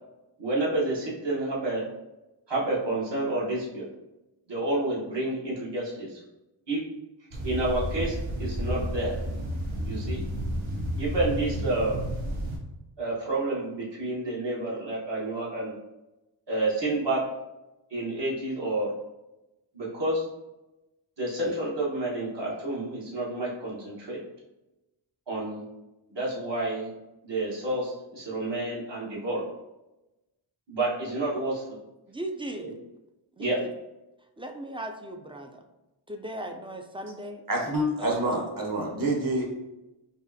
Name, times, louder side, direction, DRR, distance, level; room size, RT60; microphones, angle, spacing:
voice 1, 0.4-1.8 2.5-3.9 4.5-6.2 6.7-6.8 7.4-9.1 9.8-10.2 11.0-12.0 13.0-15.7 16.5-17.2 17.9-18.9 19.7-20.2 21.2-24.2 25.3-25.6 26.1-26.9 27.2-29.4 30.7-31.6 32.6-32.7 33.4-33.6, right 2 dB, 60° right, -5 dB, 1.4 m, -29 dB
sound 1, 7.3-12.6, equal, 85° right, 0.9 m, -31 dB
voice 2, 32.1-32.7 33.4-33.7 34.4-35.6 36.1-37.4 38.0-38.1, right 1 dB, 15° right, 4 dB, 0.3 m, -37 dB
voice 3, 37.5-39.5, right 1 dB, 45° right, -2 dB, 1.2 m, -27 dB
5.1 x 2.4 x 2.7 m, 1.0 s
wide cardioid pair, 70°, 47 cm